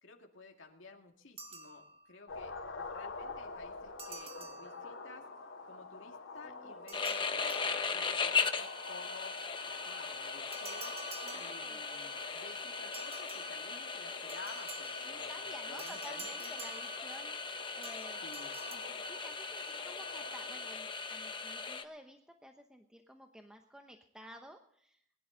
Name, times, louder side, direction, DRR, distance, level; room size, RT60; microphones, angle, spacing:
voice 1, 0.0-5.3 5.7-9.4 9.7-11.0 11.3-16.7 18.2-18.6, left 3 dB, 70° left, 2 dB, 2.2 m, -53 dB
sound 1, 1.4-2.3 4.0-5.3 6.9-8.3 10.5-12.2 12.9-15.2 15.8-17.5 17.8-18.7, right 3 dB, 30° right, 1.8 m, -50 dB
sound 2, 2.3-20.7, left 3 dB, 85° left, 3.1 m, -48 dB
voice 2, 6.4-6.8 11.2-11.8 15.0-17.4 17.7-18.3 18.7-25.0, equal, 5° right, 4 dB, 0.9 m, -53 dB
sound 3, 6.9-21.8, left 5 dB, 25° left, 0.9 m, -38 dB
21.5 x 11.5 x 3.9 m, 0.68 s
head